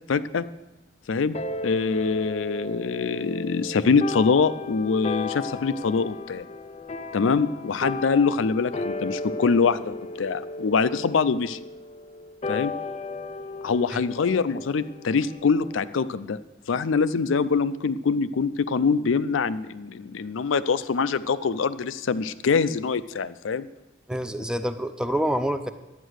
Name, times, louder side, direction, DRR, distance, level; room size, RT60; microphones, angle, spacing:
voice 1, 0.1-0.5 1.1-1.4 1.6-6.5 7.1-11.6 12.5-12.7 13.6-16.4 16.7-23.7, left 5 dB, 80° left, 14 dB, 0.5 m, -24 dB
sound 1, 1.3-16.1, left 2 dB, 35° left, 0.6 m, -35 dB
voice 2, 24.1-25.7, equal, 5° right, 10 dB, 0.5 m, -27 dB
11.0 x 8.9 x 6.4 m, 1.0 s
head